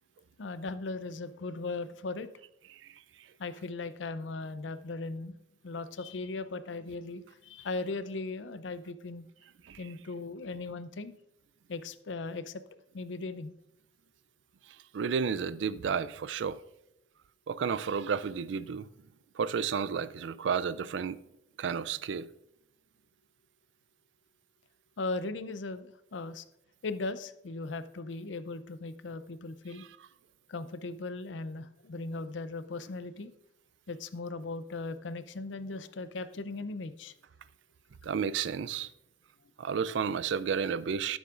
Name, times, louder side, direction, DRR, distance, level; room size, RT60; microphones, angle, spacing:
voice 1, 0.4-2.3 3.4-5.3 5.6-9.3 9.8-11.1 11.7-12.6 12.9-13.5 25.0-26.4 26.8-29.9 30.5-33.3 33.9-37.1, left 3 dB, 85° left, 0.6 m, -38 dB
voice 2, 14.9-16.6 17.5-18.9 19.4-21.2 21.6-22.3 38.0-38.9 39.6-41.2, right 6 dB, 75° right, 0.4 m, -31 dB
13.0 x 7.2 x 2.5 m
head